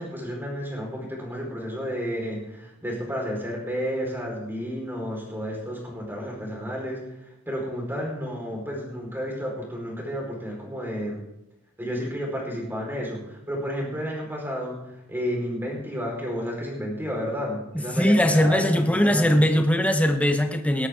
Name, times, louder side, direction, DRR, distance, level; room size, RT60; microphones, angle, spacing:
voice 1, 0.0-7.0 7.5-11.2 11.8-19.5, equal, 10° right, -2 dB, 4.6 m, -31 dB
voice 2, 17.9-20.9, equal, 5° left, 6 dB, 0.8 m, -20 dB
18.0 x 13.0 x 3.8 m, 0.88 s
head